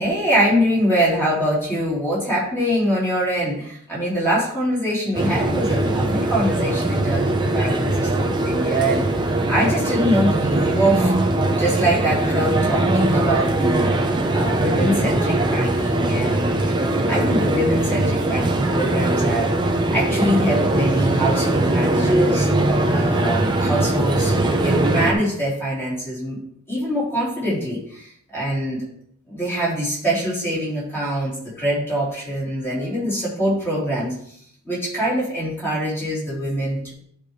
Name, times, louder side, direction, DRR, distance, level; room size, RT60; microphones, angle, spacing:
voice 1, 0.0-11.1 11.6-13.9 14.3-16.6 17.1-19.5 19.9-22.5 22.9-26.4 26.7-28.8 29.3-34.4 34.6-36.9, equal, 10° left, -8 dB, 3.6 m, -23 dB
sound 1, 5.1-25.1, right 2 dB, 20° right, 0.7 m, -21 dB
11.5 x 4.9 x 3.2 m, 0.65 s
head